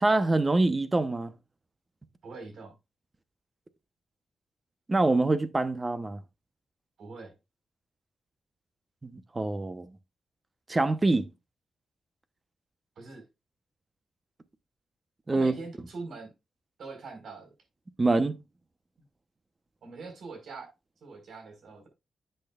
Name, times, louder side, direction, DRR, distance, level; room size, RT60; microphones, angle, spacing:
voice 1, 0.0-1.3 4.9-6.2 9.0-9.9 10.7-11.3 15.3-15.5 18.0-18.4, right 2 dB, 25° right, 0.9 m, -25 dB
voice 2, 2.2-2.7 7.0-7.3 13.0-13.3 15.3-16.3 16.8-17.5 19.8-20.7 21.0-21.9, right 4 dB, 75° right, 4.6 m, -43 dB
10.5 x 8.1 x 2.5 m
cardioid pair, 90°, 0 cm